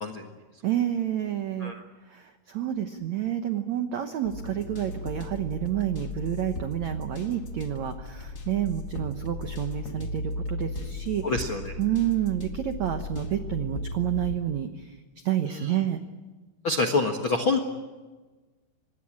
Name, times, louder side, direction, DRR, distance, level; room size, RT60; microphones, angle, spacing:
voice 1, 0.6-1.7 2.1-11.4 11.8-15.0 15.2-16.0, right 11 dB, 75° right, 7 dB, 1.6 m, -29 dB
sound 1, 4.2-14.4, left 2 dB, 40° left, 1.3 m, -36 dB
voice 2, 11.2-11.7 16.6-17.6, left 3 dB, 60° left, 5 dB, 1.3 m, -26 dB
25.5 x 20.5 x 8.8 m, 1.3 s
omnidirectional pair, 4.9 m